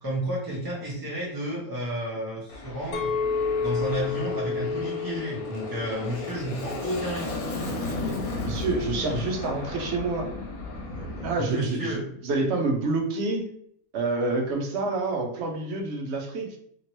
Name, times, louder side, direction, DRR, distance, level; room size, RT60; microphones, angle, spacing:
voice 1, 0.0-3.1 3.6-7.4 11.4-12.0, right 1 dB, 20° right, -6 dB, 0.6 m, -31 dB
Aircraft, 2.5-11.3, left 2 dB, 80° left, 1.2 m, -34 dB
Chink clink, 2.9-7.2 7.7-8.1, left 5 dB, 65° left, 0.8 m, -31 dB
voice 2, 8.4-10.3 11.0-12.0 12.2-13.5 13.9-16.6, right 3 dB, 60° right, 3 dB, 0.8 m, -28 dB
2.9 x 2.8 x 3.0 m, 0.65 s
omnidirectional pair, 1.5 m